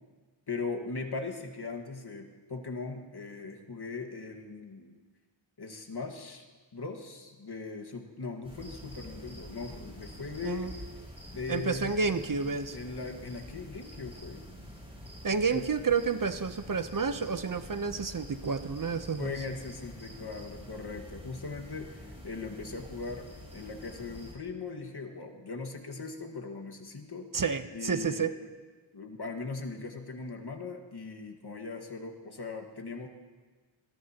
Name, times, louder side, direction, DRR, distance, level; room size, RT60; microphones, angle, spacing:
voice 1, 0.5-4.9 5.6-6.4 6.7-10.7 11.3-12.2 12.7-14.4 15.5-15.6 19.2-23.3 23.5-27.3 27.7-28.4 28.9-33.1, left 4 dB, 55° left, 3 dB, 1.8 m, -39 dB
sound 1, 8.4-24.3, equal, 10° right, 6.4 m, -47 dB
voice 2, 10.4-10.7 11.5-12.8 15.2-19.3 27.3-28.3, right 5 dB, 45° right, 11 dB, 0.8 m, -30 dB
22.5 x 19.0 x 3.0 m, 1.4 s
cardioid pair, 40°, 47 cm